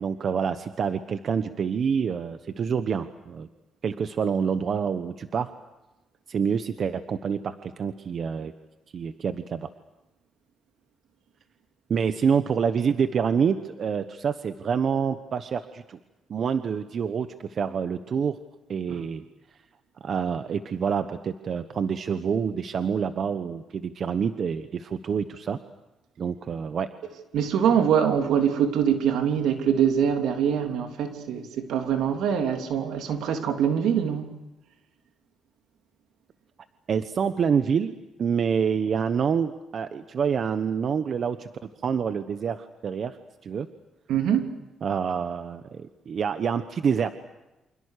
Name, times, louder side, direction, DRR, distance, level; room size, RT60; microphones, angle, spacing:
voice 1, 0.0-3.5 3.8-5.5 6.3-8.5 8.9-9.7 11.9-16.0 16.3-18.4 18.7-19.2 20.0-25.6 26.2-26.9 36.9-41.5 41.8-43.2 43.4-43.7 44.8-47.1, right 6 dB, 55° right, 1.2 m, -27 dB
voice 2, 27.3-34.3 44.1-44.5, right 8 dB, 80° right, 3.2 m, -24 dB
29.0 x 26.5 x 6.7 m
cardioid pair, 90°, 0 cm